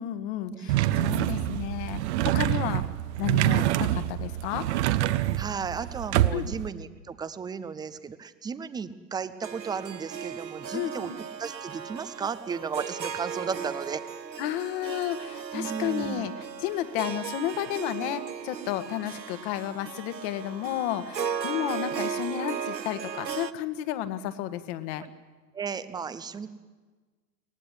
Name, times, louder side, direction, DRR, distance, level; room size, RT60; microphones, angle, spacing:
voice 1, 0.0-2.8 3.2-4.7 6.3-6.5 10.7-11.2 14.4-16.3 16.6-25.0, left 11 dB, 40° left, 11 dB, 1.7 m, -32 dB
sound 1, 0.7-6.7, right 14 dB, 40° right, 1.0 m, -26 dB
voice 2, 5.4-11.1 11.4-14.0 15.5-16.3 25.5-26.5, right 6 dB, 10° right, 14 dB, 0.7 m, -34 dB
Harp, 9.4-23.5, right 7 dB, 85° right, 1.0 m, -36 dB
23.5 x 18.5 x 9.8 m, 1.4 s
figure-of-eight pair, 105°, 50 cm